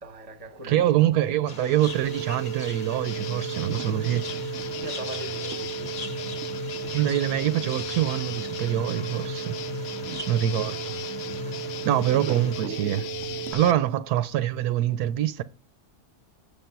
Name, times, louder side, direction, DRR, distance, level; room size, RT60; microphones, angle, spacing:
voice 1, 0.0-0.9 3.6-6.0 9.9-10.1 11.6-11.9, right 1 dB, 25° right, 0.9 m, -42 dB
voice 2, 0.7-4.2 6.9-9.6 10.3-10.9 11.8-13.1 13.5-15.4, right 12 dB, 80° right, 1.1 m, -25 dB
sound 1, 1.5-12.6, left 4 dB, 35° left, 0.8 m, -42 dB
sound 2, 1.8-13.5, right 9 dB, 65° right, 0.8 m, -35 dB
sound 3, 3.0-13.7, left 13 dB, 85° left, 1.1 m, -38 dB
7.3 x 5.3 x 5.7 m
omnidirectional pair, 1.7 m